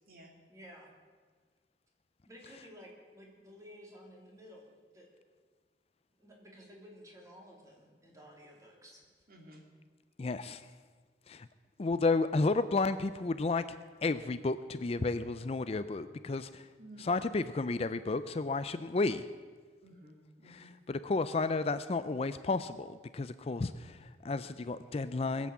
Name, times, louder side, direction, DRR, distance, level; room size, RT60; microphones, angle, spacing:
voice 1, 0.5-0.9 2.2-5.1 6.2-9.0, equal, 20° right, -1 dB, 3.1 m, -54 dB
voice 2, 9.3-9.6 16.8-17.1 19.0-19.1 19.8-20.8, right 1 dB, 55° right, 1 dB, 2.6 m, -54 dB
voice 3, 10.2-10.6 11.3-11.5 11.8-13.6 14.0-16.7 17.1-19.2 20.5-25.5, left 3 dB, 35° left, 13 dB, 0.4 m, -32 dB
21.0 x 8.4 x 7.3 m, 1.5 s
head